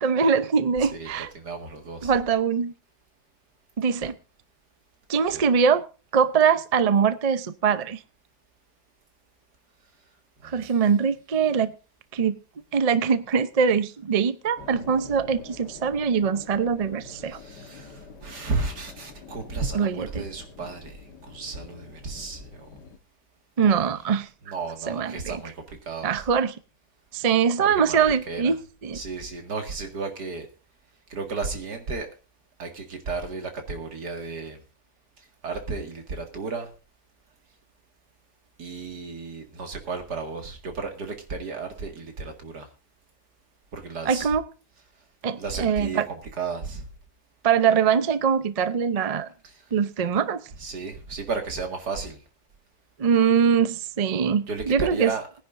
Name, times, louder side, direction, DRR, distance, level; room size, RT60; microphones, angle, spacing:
voice 1, 0.0-1.3 2.0-2.7 3.8-4.1 5.1-5.8 6.1-8.0 10.4-11.7 12.1-12.4 12.7-17.4 19.7-20.2 23.6-24.3 24.9-25.4 26.0-26.6 27.1-28.6 28.8-29.0 44.1-44.4 45.2-46.1 47.4-49.3 49.7-50.4 53.0-55.1, right 6 dB, 55° right, 0.4 m, -22 dB
voice 2, 0.8-2.1 4.0-4.1 5.3-5.5 10.4-10.7 17.3-22.7 23.6-23.9 24.5-26.3 27.6-28.6 28.9-30.5 31.1-32.1 32.6-34.6 35.4-36.7 38.6-42.7 43.7-44.3 45.4-46.9 49.4-49.6 50.6-52.2 54.5-55.3, right 4 dB, 75° right, 2.6 m, -33 dB
sound 1, 14.6-23.0, left 4 dB, 85° left, 2.1 m, -46 dB
21.0 x 10.0 x 2.6 m
omnidirectional pair, 1.8 m